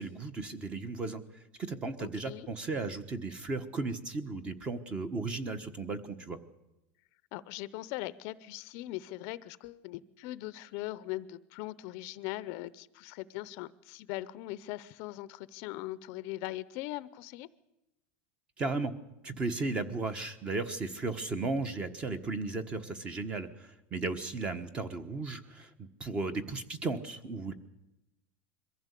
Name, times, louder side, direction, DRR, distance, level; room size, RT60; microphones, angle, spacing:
voice 1, 0.0-6.4 18.6-18.9 19.2-27.5, right 3 dB, 20° right, 12 dB, 1.3 m, -35 dB
voice 2, 2.0-2.5 7.3-17.5, left 17 dB, 45° left, 17 dB, 0.7 m, -40 dB
22.5 x 15.5 x 8.3 m, 0.94 s
supercardioid pair, 170°, 6 cm